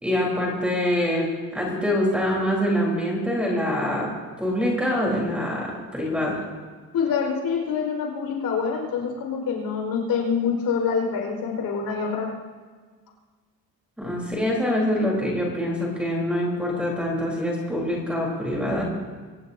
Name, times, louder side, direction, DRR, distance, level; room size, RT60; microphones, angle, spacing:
voice 1, 0.0-4.1 4.4-6.4 14.0-18.8, left 1 dB, 5° right, -3 dB, 4.1 m, -25 dB
voice 2, 6.9-12.3, left 6 dB, 70° left, 0 dB, 5.1 m, -26 dB
25.0 x 18.5 x 2.8 m, 1.5 s
cardioid pair, 180°, 36 cm